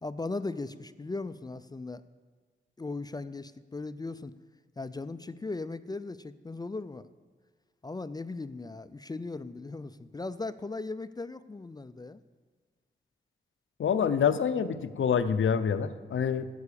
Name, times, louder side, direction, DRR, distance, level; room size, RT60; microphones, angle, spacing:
voice 1, 0.0-2.0 2.8-4.3 4.8-7.1 7.8-12.2, left 3 dB, 20° left, 13 dB, 0.3 m, -38 dB
voice 2, 13.8-16.5, left 7 dB, 85° left, 11 dB, 0.6 m, -26 dB
9.6 x 8.3 x 6.8 m, 1.4 s
wide cardioid pair, 105°, 20 cm